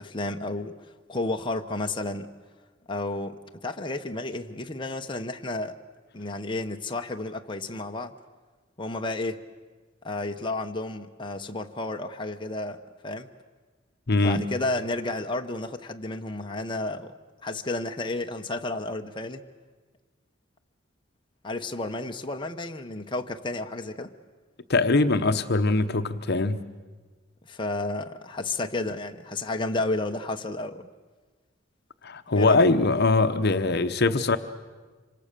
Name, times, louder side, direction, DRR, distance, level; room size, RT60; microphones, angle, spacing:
voice 1, 0.0-2.3 2.9-5.8 6.1-8.1 8.8-9.4 10.0-13.3 14.2-17.1 17.4-19.4 21.4-24.1 27.4-30.9 32.3-32.6, left 2 dB, 25° left, 1.0 m, -32 dB
voice 2, 14.1-14.5 24.7-26.7 32.0-34.4, left 3 dB, 55° left, 0.9 m, -22 dB
26.5 x 25.5 x 6.8 m
head